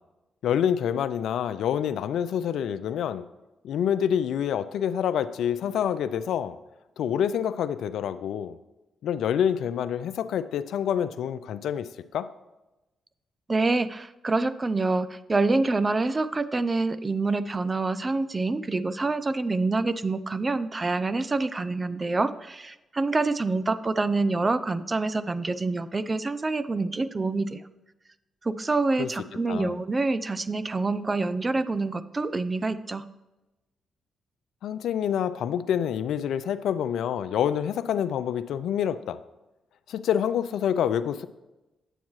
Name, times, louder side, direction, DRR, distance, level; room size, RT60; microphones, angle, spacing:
voice 1, 0.4-3.2 3.6-6.6 7.0-8.6 9.0-12.3 29.0-29.1 29.5-29.7 34.6-39.2 39.9-41.3, left 9 dB, 75° left, 14 dB, 0.4 m, -27 dB
voice 2, 13.5-27.6 28.4-33.1, right 3 dB, 30° right, 14 dB, 0.5 m, -26 dB
9.0 x 8.2 x 3.1 m, 1.0 s
supercardioid pair, 50°, 0 cm